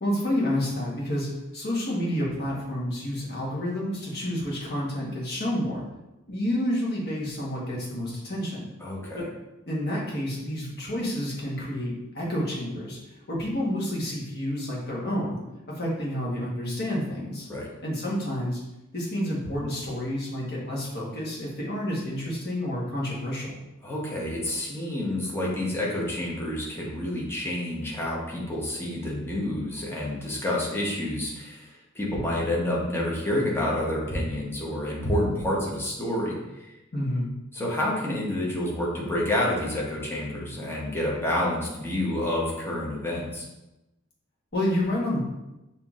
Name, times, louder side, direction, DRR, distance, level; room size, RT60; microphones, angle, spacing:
voice 1, 0.0-5.8 6.3-8.7 9.1-9.3 9.7-13.0 13.3-15.4 15.7-17.5 17.8-18.6 18.9-23.6 36.9-37.3 44.5-45.2, left 1 dB, 50° left, -5 dB, 1.2 m, -29 dB
voice 2, 8.8-9.2 17.5-17.7 23.8-36.7 37.5-43.5, left 1 dB, 10° left, -4 dB, 0.8 m, -29 dB
5.7 x 2.7 x 2.4 m, 0.96 s
head